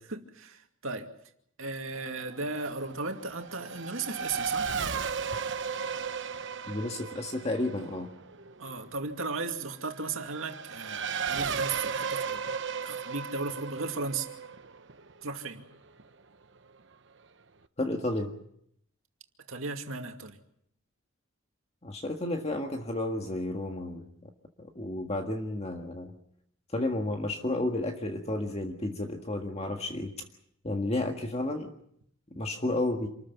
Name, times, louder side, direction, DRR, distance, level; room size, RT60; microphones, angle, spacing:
voice 1, 0.1-1.1 1.6-4.7 8.6-12.6 12.8-14.3 15.2-15.7 19.5-20.4, right 3 dB, 75° right, 4 dB, 2.4 m, -36 dB
Race car auto racing / Accelerating revving vroom, 1.9-16.0, right 6 dB, 60° right, 1.0 m, -36 dB
voice 2, 6.7-8.1 17.8-18.3 21.8-24.3 24.6-26.1 26.7-30.1 30.6-31.7 32.3-33.1, left 1 dB, 30° left, 3 dB, 1.7 m, -32 dB
27.5 x 14.0 x 9.2 m, 0.71 s
head